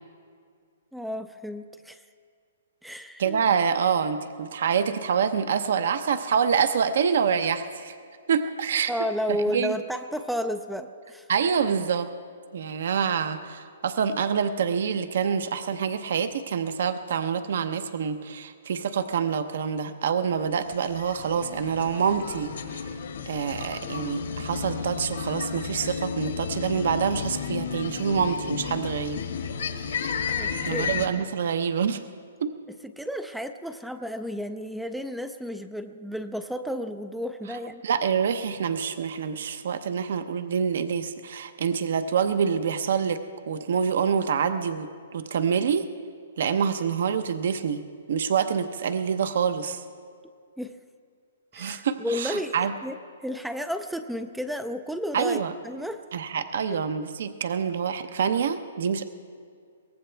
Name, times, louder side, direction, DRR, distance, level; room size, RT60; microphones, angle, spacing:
voice 1, 0.9-2.0 2.8-3.4 8.9-11.3 30.4-31.1 32.8-37.8 50.6-50.7 51.5-56.0 56.7-56.8, equal, ahead, 8 dB, 0.4 m, -32 dB
voice 2, 3.2-7.9 8.3-8.9 9.5-9.8 11.3-12.1 12.5-22.8 23.3-29.2 30.6-32.0 32.4-32.5 37.8-45.9 46.4-47.8 48.1-49.8 51.5-52.7 55.1-55.5 56.1-59.0, right 7 dB, 55° right, 10 dB, 0.8 m, -26 dB
sound 1, 20.5-31.1, left 6 dB, 75° left, 1.6 m, -33 dB
22.5 x 18.0 x 3.4 m, 2.2 s
hypercardioid pair, 170°, 0 cm